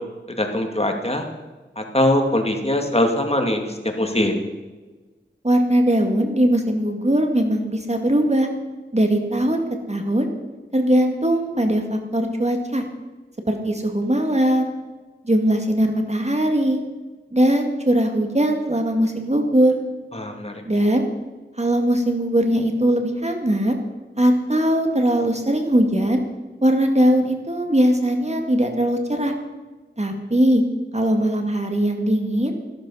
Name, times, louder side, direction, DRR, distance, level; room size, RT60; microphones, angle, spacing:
voice 1, 0.4-1.3 1.8-4.4 20.1-20.6, left 1 dB, 30° left, 3 dB, 2.3 m, -22 dB
voice 2, 5.4-8.5 8.9-10.3 10.7-12.8 13.5-14.7 15.2-16.8 17.3-19.7 20.7-21.1 21.6-23.8 24.2-26.2 26.6-29.3 30.0-30.6 30.9-32.5, right 1 dB, 35° right, 4 dB, 2.2 m, -20 dB
14.0 x 13.0 x 5.7 m, 1.3 s
wide cardioid pair, 40°, 19 cm